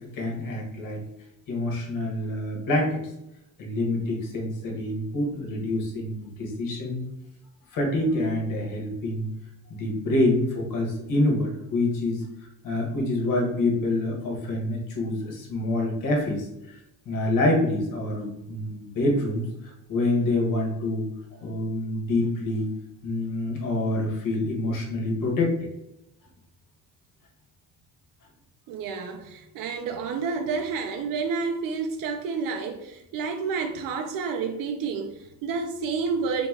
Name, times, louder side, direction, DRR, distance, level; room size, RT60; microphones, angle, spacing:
voice 1, 0.1-1.0 1.5-3.0 3.6-7.0 7.7-9.3 9.7-16.8 17.0-21.0 21.4-22.7 23.0-25.6, left 1 dB, 65° left, 1.3 m, -26 dB
voice 2, 28.7-36.5, right 5 dB, 70° right, 0.5 m, -30 dB
3.8 x 2.9 x 3.6 m
cardioid pair, 175°, 35 cm